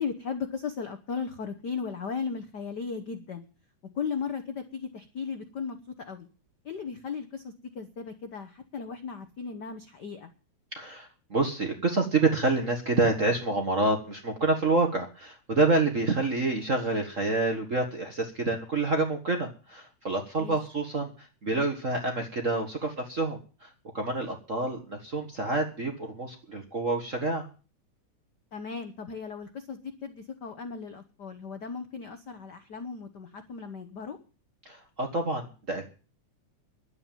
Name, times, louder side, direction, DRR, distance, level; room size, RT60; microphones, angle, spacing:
voice 1, 0.0-3.4 3.9-6.3 6.6-10.3 20.4-20.6 28.5-34.2, left 5 dB, 65° left, 7 dB, 1.0 m, -36 dB
voice 2, 10.7-27.5 34.6-35.9, right 3 dB, 35° right, 4 dB, 1.3 m, -28 dB
11.0 x 8.7 x 9.1 m, 0.36 s
omnidirectional pair, 3.5 m